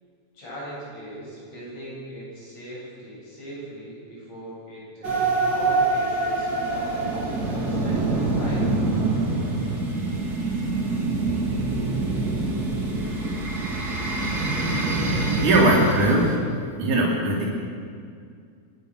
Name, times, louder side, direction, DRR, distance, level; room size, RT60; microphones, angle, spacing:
voice 1, 0.3-8.6, right 1 dB, 60° left, -6 dB, 9.4 m, -40 dB
sound 1, 5.0-16.4, right 3 dB, 30° right, 3.5 m, -25 dB
voice 2, 15.4-16.3 16.8-17.5, right 1 dB, 75° right, -3 dB, 4.9 m, -19 dB
25.5 x 21.5 x 6.6 m, 2.2 s
omnidirectional pair, 3.4 m